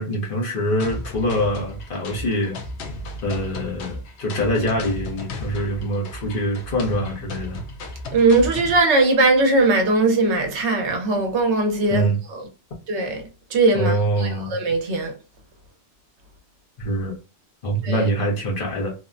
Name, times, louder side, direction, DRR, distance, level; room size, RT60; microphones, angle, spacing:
voice 1, 0.0-2.6 3.2-7.6 11.9-12.2 13.7-14.5 16.8-17.2 17.6-18.9, equal, 55° left, 1.1 m, -24 dB
sound 1, 0.8-8.8, left 2 dB, 75° left, 0.9 m, -34 dB
voice 2, 8.1-12.5 12.9-15.1 17.8-18.1, right 3 dB, 80° right, 1.1 m, -20 dB
3.2 x 2.1 x 2.5 m
omnidirectional pair, 1.1 m